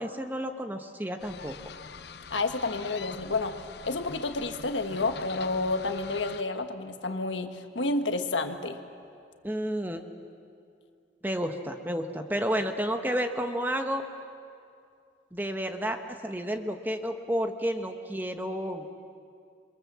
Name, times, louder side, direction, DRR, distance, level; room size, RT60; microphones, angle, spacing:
voice 1, 0.0-1.6 9.4-10.0 11.2-14.1 15.3-18.9, equal, 10° right, 6 dB, 1.1 m, -31 dB
sound 1, 1.2-6.4, left 5 dB, 65° left, 0.8 m, -44 dB
voice 2, 2.3-3.5 3.8-8.8, left 3 dB, 90° left, 7 dB, 1.5 m, -30 dB
28.0 x 23.0 x 7.5 m, 2.4 s
head